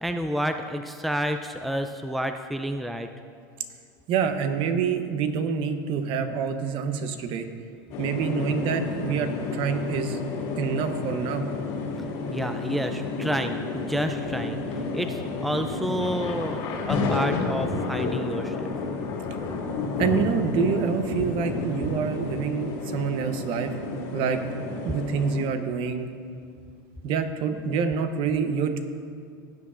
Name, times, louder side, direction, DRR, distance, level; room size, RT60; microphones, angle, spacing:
voice 1, 0.0-3.1 12.3-14.6 14.9-18.7, equal, ahead, 7 dB, 0.4 m, -29 dB
voice 2, 4.1-7.5 8.0-10.2 10.6-11.4 20.0-23.7 24.1-24.4 24.8-26.1 27.0-28.8, right 6 dB, 50° right, 8 dB, 0.9 m, -26 dB
sound 1, 7.9-25.4, left 3 dB, 60° left, 2.2 m, -31 dB
17.0 x 7.3 x 2.5 m, 2.3 s
supercardioid pair, 105°, 11 cm